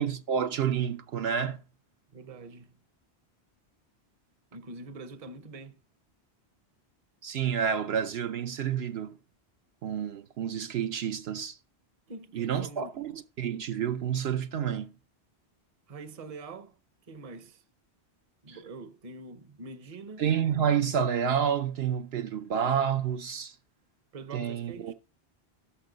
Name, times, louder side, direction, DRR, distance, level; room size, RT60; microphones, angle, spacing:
voice 1, 0.0-1.6 7.2-9.2 9.8-11.6 12.3-14.9 18.5-18.6 20.2-23.6 24.3-24.9, right 8 dB, 70° right, 0.9 m, -29 dB
voice 2, 2.1-2.8 4.5-5.8 12.1-12.9 15.9-16.8 17.0-17.6 18.4-20.2 24.1-24.9, right 3 dB, 35° right, 0.8 m, -44 dB
13.0 x 5.3 x 3.9 m
omnidirectional pair, 1.1 m